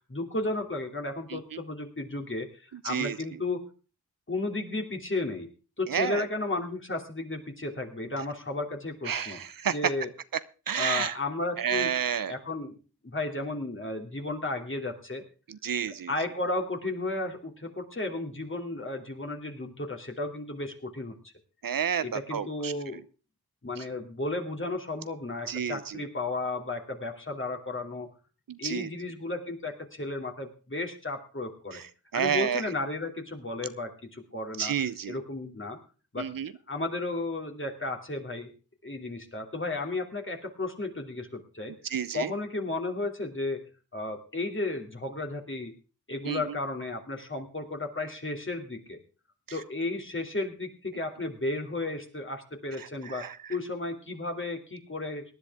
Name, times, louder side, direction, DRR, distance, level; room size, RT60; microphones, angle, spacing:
voice 1, 0.1-3.6 4.3-5.5 5.8-9.4 9.7-10.1 10.7-11.9 12.3-12.7 13.0-15.2 16.1-21.2 22.0-23.0 23.6-28.1 28.6-31.8 32.1-34.7 35.1-35.8 36.1-36.3 36.7-38.5 38.8-41.8 42.1-43.6 43.9-45.7 46.1-49.0 49.5-55.4, left 2 dB, 30° left, 2 dB, 2.8 m, -33 dB
voice 2, 5.9-6.3 9.1-9.7 10.7-11.1 11.6-12.3 15.5-16.1 21.6-22.7 25.5-26.0 28.5-28.9 32.1-32.6 34.6-35.2 36.2-36.5 41.9-42.3 46.3-46.4 53.2-53.3, right 8 dB, 60° right, 15 dB, 0.7 m, -30 dB
18.5 x 10.5 x 3.6 m, 0.34 s
cardioid pair, 50°, 38 cm